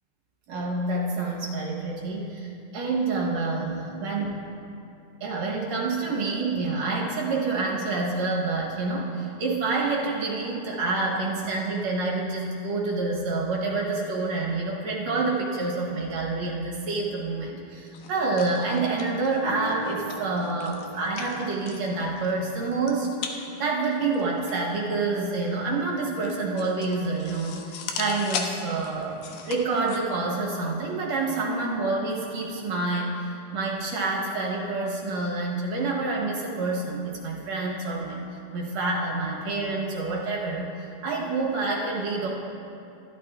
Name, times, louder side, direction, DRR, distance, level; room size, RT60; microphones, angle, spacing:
voice 1, 0.5-4.3 5.2-23.1 23.6-38.2 38.5-42.3, right 3 dB, 65° right, -3 dB, 2.2 m, -28 dB
sound 1, 17.9-30.0, left 6 dB, 85° left, 2.3 m, -39 dB
Guitar, 19.4-23.1, right 1 dB, 65° left, 2.7 m, -42 dB
14.5 x 11.5 x 2.4 m, 2.7 s
omnidirectional pair, 3.5 m